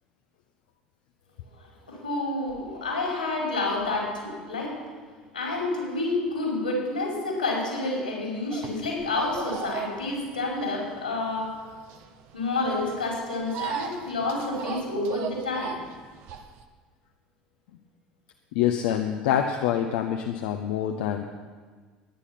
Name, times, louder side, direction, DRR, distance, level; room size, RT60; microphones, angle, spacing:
voice 1, 1.9-4.8 5.3-11.6 12.3-15.8, left 2 dB, 85° left, -2 dB, 4.8 m, -29 dB
sound 1, 8.5-16.6, right 8 dB, 55° right, 1.2 m, -38 dB
voice 2, 18.5-21.2, left 10 dB, 60° left, 4 dB, 0.9 m, -26 dB
21.0 x 9.9 x 5.9 m, 1.5 s
figure-of-eight pair, 70°, 5 cm